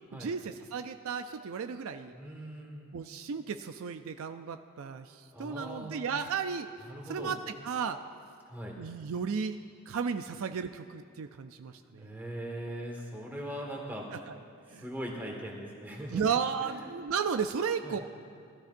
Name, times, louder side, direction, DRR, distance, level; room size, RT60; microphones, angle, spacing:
voice 1, 0.0-2.1 2.9-6.7 7.1-8.0 8.8-9.6 9.9-12.2 14.3-14.4 14.7-14.9 16.1-18.0, right 6 dB, 65° right, 8 dB, 0.4 m, -34 dB
voice 2, 2.1-2.9 5.3-6.2 6.8-7.3 8.5-8.8 12.0-14.0 14.8-16.3 16.6-16.9 17.8-18.0, right 1 dB, 10° right, -2 dB, 1.6 m, -40 dB
18.5 x 13.0 x 2.6 m, 2.4 s
head